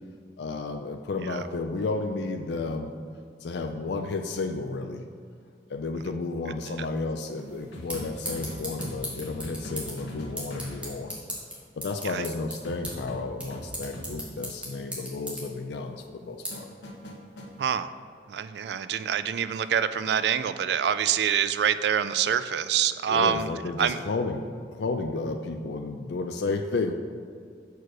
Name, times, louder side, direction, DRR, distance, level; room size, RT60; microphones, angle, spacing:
voice 1, 0.4-2.9 3.4-5.0 5.7-11.2 11.8-16.7 20.8-20.9 23.1-24.5 24.7-26.9, left 3 dB, 70° left, 5 dB, 0.4 m, -32 dB
sound 1, 7.3-17.7, equal, 5° right, 1.4 m, -40 dB
sound 2, 7.7-11.0 12.6-14.1 16.5-17.5 19.5-19.7, equal, 90° left, 1.1 m, -40 dB
voice 2, 17.6-17.9 18.3-23.5 23.8-24.0, right 8 dB, 70° right, 12 dB, 0.3 m, -26 dB
6.4 x 4.6 x 6.0 m, 2.2 s
head